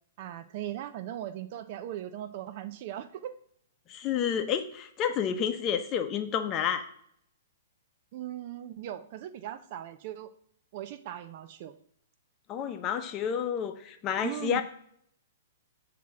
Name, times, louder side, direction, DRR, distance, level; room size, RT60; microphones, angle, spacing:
voice 1, 0.2-3.4 8.1-10.3 10.7-11.7 14.2-14.6, right 12 dB, 50° right, 11 dB, 0.6 m, -38 dB
voice 2, 3.9-6.8 12.5-14.6, left 8 dB, 30° left, 7 dB, 0.8 m, -30 dB
8.1 x 2.9 x 6.0 m, 0.67 s
hypercardioid pair, 130°, 0 cm